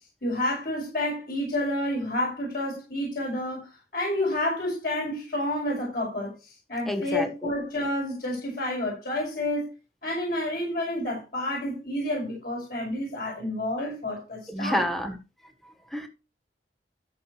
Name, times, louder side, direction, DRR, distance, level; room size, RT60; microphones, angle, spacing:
voice 1, 0.2-9.7 10.0-14.8, left 1 dB, 55° left, 5.7 m, -29 dB
voice 2, 6.9-7.5 14.5-15.2 15.6-16.1, equal, ahead, 1.5 m, -29 dB
14.0 x 6.3 x 3.3 m
head